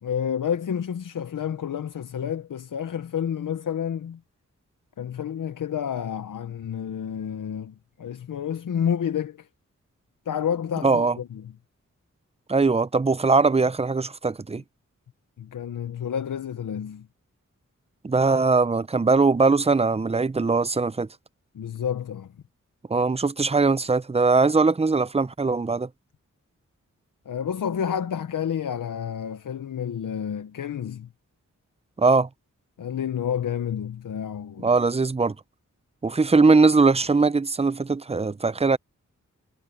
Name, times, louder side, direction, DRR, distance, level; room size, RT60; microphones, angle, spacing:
voice 1, 0.0-4.2 5.0-9.5 10.3-11.5 15.4-17.1 21.5-22.3 27.3-31.1 32.8-34.7, left 8 dB, 85° left, 0.9 m, -30 dB
voice 2, 10.8-11.2 12.5-14.6 18.0-21.1 22.9-25.9 32.0-32.3 34.6-35.3 36.0-38.8, right 4 dB, 20° right, 0.6 m, -21 dB
cardioid pair, 60°, 31 cm